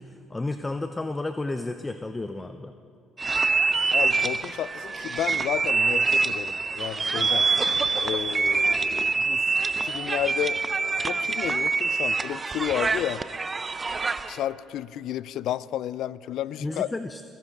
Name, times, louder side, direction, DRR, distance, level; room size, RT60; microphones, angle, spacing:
voice 1, 0.0-2.7 16.6-17.2, left 2 dB, 20° left, 9 dB, 0.5 m, -32 dB
sound 1, 3.2-14.4, right 4 dB, 30° right, 0.6 m, -25 dB
voice 2, 3.9-7.5 8.0-10.6 11.1-13.2 14.3-16.9, left 12 dB, 70° left, 19 dB, 0.3 m, -32 dB
22.5 x 10.0 x 3.6 m, 2.6 s
supercardioid pair, 65°, 0 cm